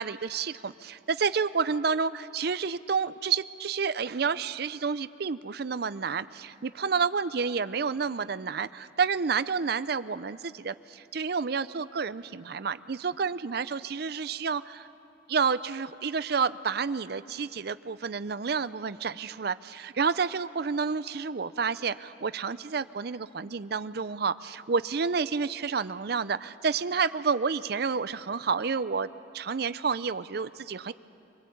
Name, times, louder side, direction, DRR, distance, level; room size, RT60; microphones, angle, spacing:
voice 1, 0.0-14.9 15.3-30.9, right 5 dB, 55° right, 15 dB, 0.5 m, -30 dB
25.0 x 18.5 x 8.5 m, 2.8 s
head